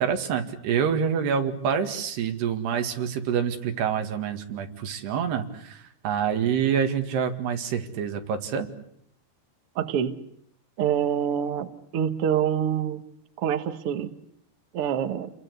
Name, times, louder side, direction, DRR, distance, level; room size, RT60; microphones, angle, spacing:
voice 1, 0.0-8.7, right 7 dB, 90° right, 6 dB, 4.2 m, -27 dB
voice 2, 9.7-10.2 10.8-13.0 13.4-14.1 14.7-15.3, right 9 dB, 55° right, 9 dB, 1.7 m, -26 dB
29.5 x 22.0 x 8.1 m, 0.71 s
omnidirectional pair, 4.6 m